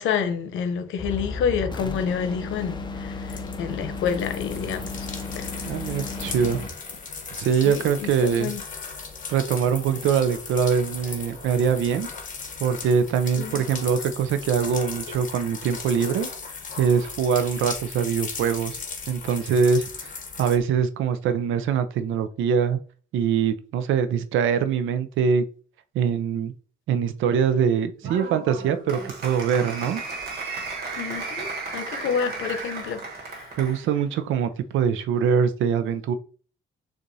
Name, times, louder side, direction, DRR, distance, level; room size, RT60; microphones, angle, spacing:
voice 1, 0.0-5.1 5.4-5.8 7.6-8.6 13.4-13.6 31.0-33.5, left 7 dB, 80° left, 0.7 m, -29 dB
sound 1, 1.0-6.8, left 3 dB, 25° left, 0.6 m, -34 dB
sound 2, 2.5-20.6, left 5 dB, 40° left, 1.0 m, -37 dB
voice 2, 5.6-6.6 7.3-8.5 9.3-12.1 12.6-16.3 16.8-18.8 19.1-20.1 20.4-22.8 23.1-25.4 25.9-26.5 26.9-30.0 33.6-36.1, right 7 dB, 80° right, 0.5 m, -23 dB
Applause, 28.0-33.8, right 3 dB, 55° right, 1.3 m, -34 dB
6.7 x 2.5 x 2.7 m
cardioid pair, 90°, 20 cm